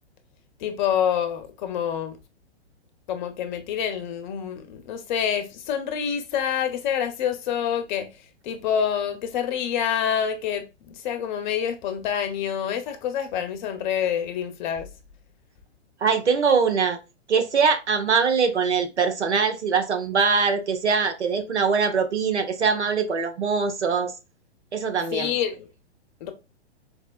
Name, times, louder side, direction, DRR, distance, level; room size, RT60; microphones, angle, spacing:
voice 1, 0.6-2.2 3.1-8.1 8.4-14.9 25.1-25.7 26.2-26.3, left 8 dB, 45° left, 0.7 m, -27 dB
voice 2, 16.0-17.0 17.3-24.1 24.7-25.3, right 5 dB, 90° right, 0.8 m, -22 dB
4.2 x 2.1 x 2.3 m
hypercardioid pair, 115°, 34 cm